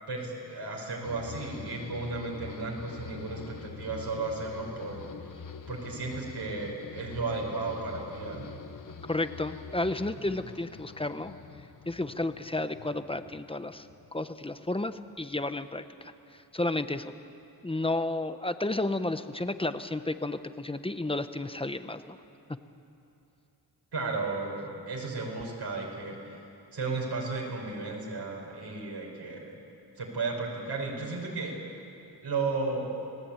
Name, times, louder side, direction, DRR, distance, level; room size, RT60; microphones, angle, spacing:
voice 1, 0.1-5.0 5.7-8.5 23.9-26.4 26.7-29.6 30.0-31.5 32.2-32.9, right 3 dB, 70° right, -1 dB, 5.5 m, -34 dB
sound 1, 1.0-14.4 14.7-15.3, left 6 dB, 50° left, 1.0 m, -45 dB
voice 2, 9.1-11.3 11.9-13.9 14.1-17.1 17.6-22.2, left 2 dB, 15° left, 10 dB, 0.8 m, -32 dB
29.5 x 19.0 x 8.9 m, 2.8 s
wide cardioid pair, 155°, 41 cm